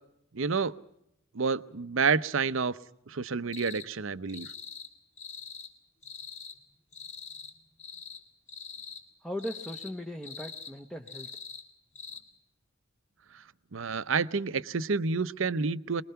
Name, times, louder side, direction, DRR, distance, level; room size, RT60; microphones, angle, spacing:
voice 1, 0.3-0.7 1.3-2.8 3.1-4.5 13.7-16.0, right 5 dB, 70° right, 14 dB, 0.7 m, -29 dB
sound 1, 3.5-3.9 4.3-4.9 5.2-5.7 6.0-6.6 6.9-7.5 7.8-8.2 8.5-9.0 9.4-9.9 10.2-10.7 11.1-11.6 11.9-12.2, left 5 dB, 35° left, 3.2 m, -43 dB
voice 2, 9.2-11.3, equal, 5° left, 3 dB, 0.9 m, -38 dB
23.0 x 21.5 x 5.7 m, 0.78 s
head